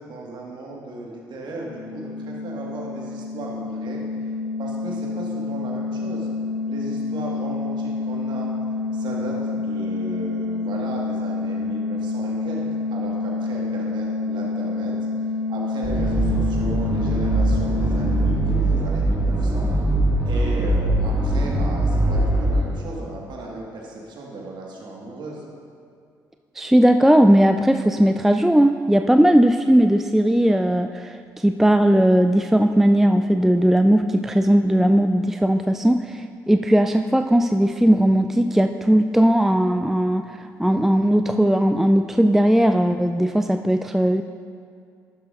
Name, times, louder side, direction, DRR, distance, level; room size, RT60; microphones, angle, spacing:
voice 1, 0.0-4.0 4.6-6.3 6.7-8.5 8.9-12.6 12.9-15.0 15.5-19.7 20.2-25.4, right 2 dB, 55° right, -2 dB, 1.7 m, -35 dB
sound 1, 1.5-19.0, left 3 dB, 65° left, 1.3 m, -28 dB
sound 2, 15.8-22.6, right 1 dB, 25° right, 2.0 m, -21 dB
voice 2, 26.6-44.2, right 1 dB, 5° right, 7 dB, 0.3 m, -18 dB
12.0 x 10.0 x 2.6 m, 2.3 s
figure-of-eight pair, 45°, 9 cm